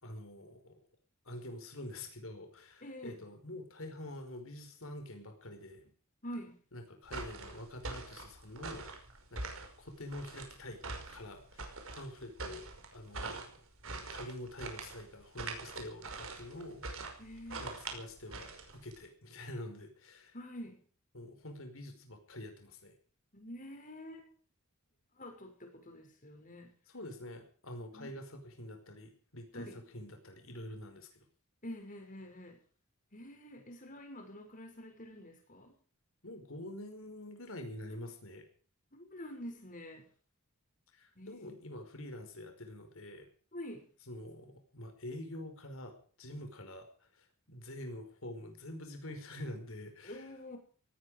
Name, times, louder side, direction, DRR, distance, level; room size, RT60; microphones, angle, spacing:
voice 1, 0.0-0.8 1.2-5.9 6.7-10.8 11.1-13.6 14.1-17.2 17.6-20.3 21.1-22.9 26.9-31.2 36.2-38.4 40.9-43.3 44.1-50.3, left 1 dB, 65° left, 6 dB, 5.1 m, -46 dB
voice 2, 2.8-3.2 6.2-6.6 17.2-17.7 20.3-20.8 23.3-24.3 25.2-26.8 27.9-28.1 29.5-29.8 31.6-32.6 33.1-35.7 38.9-40.1 41.1-41.5 43.5-43.9 50.0-50.6, equal, 35° left, 4 dB, 6.2 m, -47 dB
sound 1, 7.0-19.0, right 3 dB, 65° right, 5.3 m, -44 dB
18.5 x 15.0 x 5.0 m, 0.43 s
head